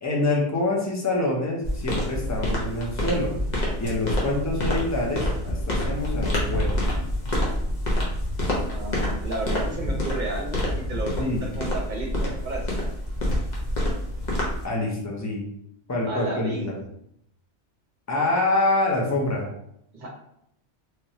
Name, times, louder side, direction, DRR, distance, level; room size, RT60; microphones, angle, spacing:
voice 1, 0.0-3.3 3.8-6.8 11.2-11.5 14.6-15.5 15.9-16.8 18.1-19.5, left 2 dB, 20° left, -2 dB, 0.5 m, -26 dB
sound 1, 1.6-14.6, left 1 dB, 40° left, 0.9 m, -27 dB
voice 2, 8.7-12.7 16.1-16.7 19.9-20.1, right 2 dB, 45° right, -1 dB, 0.8 m, -33 dB
3.3 x 2.9 x 2.7 m, 0.74 s
omnidirectional pair, 1.2 m